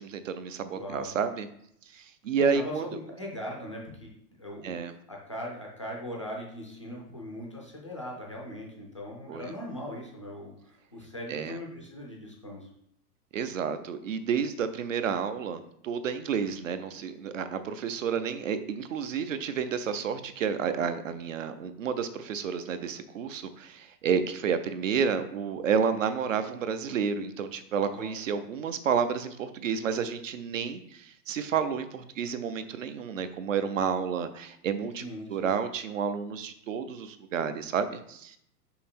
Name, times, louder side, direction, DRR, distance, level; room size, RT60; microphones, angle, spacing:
voice 1, 0.0-1.5 1.9-2.8 4.6-4.9 9.3-9.5 11.3-11.6 13.3-35.0 35.3-38.4, right 6 dB, 55° right, 11 dB, 0.5 m, -30 dB
voice 2, 0.7-1.1 2.4-4.1 4.4-12.7 27.9-28.1 35.0-35.5, left 1 dB, 20° left, -1 dB, 0.4 m, -40 dB
5.7 x 5.1 x 4.3 m, 0.72 s
hypercardioid pair, 175°, 49 cm